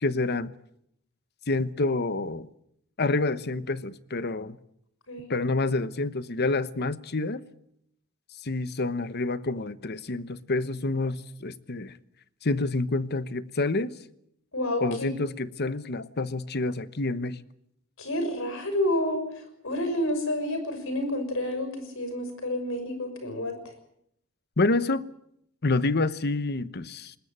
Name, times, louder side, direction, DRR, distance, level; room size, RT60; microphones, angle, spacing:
voice 1, 0.0-0.5 1.5-2.5 3.0-4.6 5.3-7.4 8.4-12.0 12.4-13.9 14.8-17.4 24.6-25.1 25.6-27.1, left 2 dB, 50° left, 1.0 m, -28 dB
voice 2, 14.5-15.1 18.0-19.2 19.6-23.5, left 1 dB, 70° left, 6.4 m, -29 dB
20.5 x 20.5 x 8.8 m
head